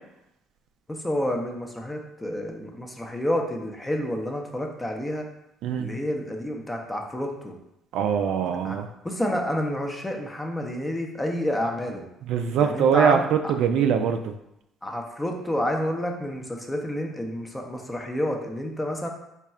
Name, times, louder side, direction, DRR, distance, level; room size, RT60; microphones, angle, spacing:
voice 1, 0.9-5.3 5.8-7.5 8.6-8.8 9.0-12.0 12.6-13.2 14.8-19.1, left 1 dB, 10° left, 2 dB, 0.6 m, -29 dB
voice 2, 5.6-5.9 7.9-8.9 12.3-14.3, right 7 dB, 75° right, 6 dB, 0.3 m, -22 dB
3.6 x 2.3 x 4.2 m, 0.84 s
cardioid pair, 125°, 0 cm